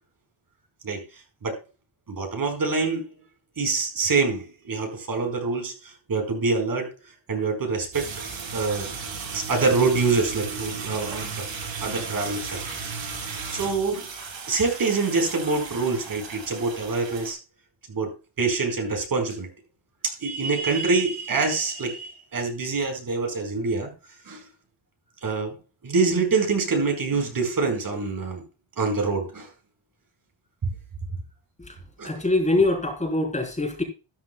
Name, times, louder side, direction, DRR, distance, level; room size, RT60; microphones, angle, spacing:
voice 1, 2.1-3.1 3.6-6.9 7.3-8.1 8.5-8.9 9.3-11.4 11.8-12.6 13.5-14.1 14.5-17.4 17.9-18.1 18.4-19.5 20.0-23.9 24.3-24.4 25.2-25.6 25.8-28.4 28.8-29.5 32.0-32.2, right 4 dB, 45° right, 4.6 m, -25 dB
sound 1, 7.9-17.3, right 5 dB, 75° right, 6.3 m, -35 dB
voice 2, 32.0-33.8, left 2 dB, 15° left, 3.7 m, -24 dB
13.0 x 12.5 x 2.3 m
cardioid pair, 130°, 46 cm